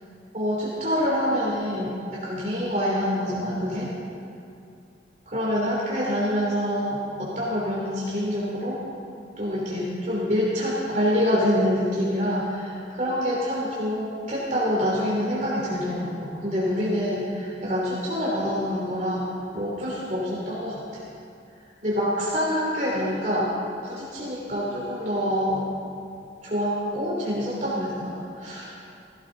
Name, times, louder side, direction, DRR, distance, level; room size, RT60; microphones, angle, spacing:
voice 1, 0.3-3.9 5.3-8.8 9.4-19.2 19.5-21.0 21.8-23.5 23.8-25.6 26.4-28.7, equal, 40° right, -5 dB, 2.9 m, -26 dB
16.0 x 16.0 x 3.9 m, 2.6 s
head